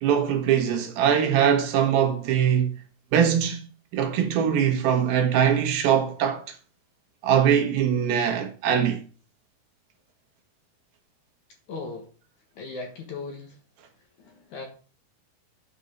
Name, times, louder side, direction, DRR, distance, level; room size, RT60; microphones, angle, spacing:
voice 1, 0.0-2.7 3.1-3.6 3.9-6.4 7.2-9.0, right 8 dB, 70° right, 2.9 m, -22 dB
voice 2, 11.7-12.1 12.6-13.6 14.2-14.7, left 3 dB, 60° left, 2.3 m, -37 dB
9.8 x 5.5 x 5.2 m
omnidirectional pair, 4.8 m